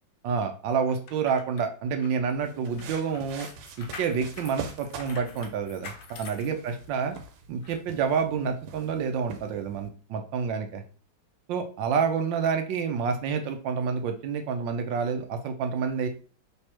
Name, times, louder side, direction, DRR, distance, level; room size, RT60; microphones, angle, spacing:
voice 1, 0.2-3.5 3.8-7.2 7.5-10.8 11.5-16.1, right 6 dB, 70° right, 6 dB, 1.3 m, -28 dB
sound 1, 0.9-7.2 7.6-7.8, left 4 dB, 70° left, 1.0 m, -46 dB
sound 2, 2.4-9.9, right 6 dB, 85° right, 1.6 m, -45 dB
3.4 x 3.4 x 4.4 m, 0.38 s
omnidirectional pair, 2.4 m